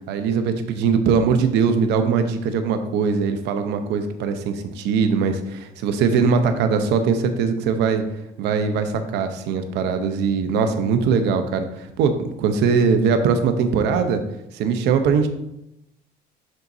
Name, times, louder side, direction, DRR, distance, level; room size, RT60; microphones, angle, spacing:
voice 1, 0.1-8.0 8.4-14.2 14.5-15.3, right 5 dB, 85° right, 8 dB, 0.8 m, -21 dB
10.5 x 4.0 x 2.7 m, 0.87 s
cardioid pair, 110°, 17 cm